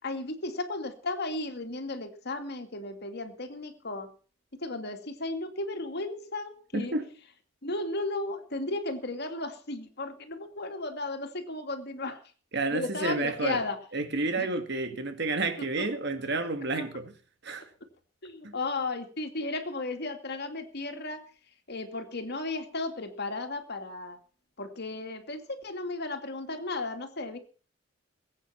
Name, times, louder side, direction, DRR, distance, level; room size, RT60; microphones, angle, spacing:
voice 1, 0.0-4.1 4.6-6.9 7.6-12.2 12.7-13.8 14.4-14.5 15.8-15.9 16.7-16.8 18.2-21.2 21.7-24.2 24.6-27.4, left 2 dB, 55° left, 2.6 m, -34 dB
voice 2, 6.7-7.1 12.5-13.6 13.9-17.1 17.4-17.7 18.4-18.5, right 3 dB, 60° right, 2.3 m, -30 dB
21.0 x 8.9 x 5.9 m
head